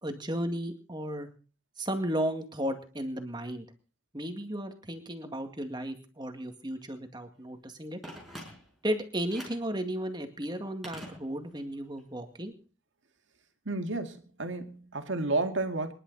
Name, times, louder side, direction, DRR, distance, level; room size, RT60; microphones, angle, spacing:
voice 1, 0.0-1.3 1.8-3.7 4.1-8.0 8.8-12.5, equal, 20° right, 2.0 m, -34 dB
Telephone, 8.0-8.9 9.3-9.7 10.8-11.7 12.0-12.1, equal, ahead, 5.6 m, -45 dB
voice 2, 13.7-15.9, right 2 dB, 70° right, 2.1 m, -31 dB
26.5 x 11.5 x 4.1 m
head